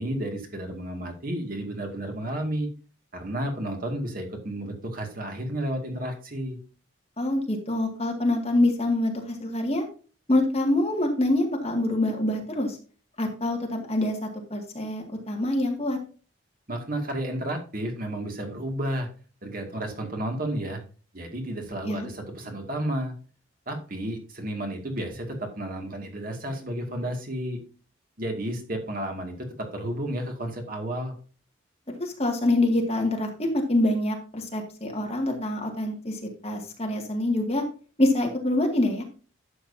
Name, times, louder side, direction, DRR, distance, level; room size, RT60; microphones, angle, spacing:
voice 1, 0.0-2.7 3.1-6.6 16.7-19.1 19.4-20.8 21.1-23.1 23.7-27.6 28.2-31.1, right 1 dB, 45° right, 2 dB, 2.2 m, -32 dB
voice 2, 7.2-9.8 10.3-12.8 13.2-16.0 21.8-22.1 31.9-37.6 38.0-39.0, left 1 dB, 30° left, 1 dB, 2.0 m, -25 dB
11.5 x 7.8 x 2.7 m, 0.37 s
head